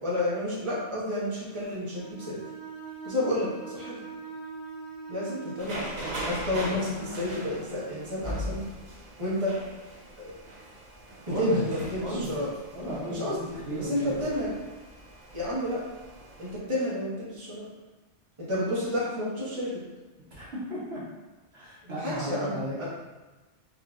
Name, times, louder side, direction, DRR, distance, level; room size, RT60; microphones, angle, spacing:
voice 1, 0.0-2.4 3.0-4.0 5.1-8.6 9.2-9.6 10.2-10.3 11.4-12.5 13.1-14.5 15.3-15.8 16.4-17.7 18.4-19.8 21.8-22.9, left 1 dB, 25° right, -8 dB, 1.2 m, -31 dB
Bowed string instrument, 1.9-5.7, right 5 dB, 85° right, 1.5 m, -42 dB
sound 1, 5.6-16.6, right 1 dB, 45° right, 0.7 m, -40 dB
voice 2, 11.3-11.6 12.0-12.3 12.7-14.2 20.3-21.0 21.5-22.9, equal, 60° right, -8 dB, 1.2 m, -34 dB
5.0 x 2.8 x 2.4 m, 1.2 s
omnidirectional pair, 1.2 m